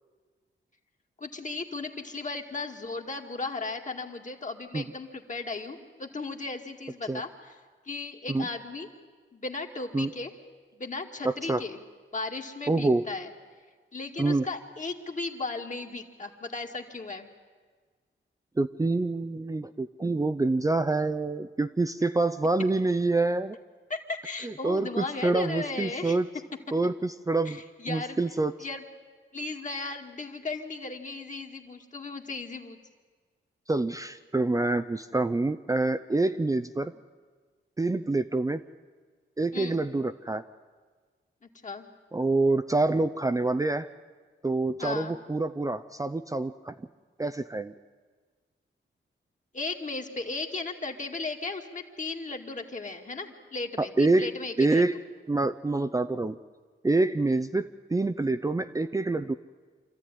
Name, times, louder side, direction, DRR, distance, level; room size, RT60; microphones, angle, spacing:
voice 1, 1.2-7.5 7.9-8.9 9.3-10.3 10.8-11.8 12.1-13.3 13.9-17.3 23.9-26.2 27.4-28.2 28.6-28.8 29.3-32.8 36.8-36.9 39.5-39.8 41.6-41.9 44.8-45.1 49.5-54.8, left 3 dB, 40° left, 3 dB, 2.2 m, -36 dB
voice 2, 11.2-11.6 12.7-13.1 14.2-14.5 18.6-23.6 24.4-26.3 26.7-27.6 27.9-28.5 33.7-36.9 37.8-38.6 39.4-40.4 42.1-43.9 44.4-46.8 47.2-47.7 53.8-54.3 54.6-55.0 55.3-56.4 56.8-59.3, right 2 dB, 15° right, 9 dB, 0.6 m, -26 dB
26.0 x 14.0 x 9.9 m, 1.5 s
cardioid pair, 80°, 20 cm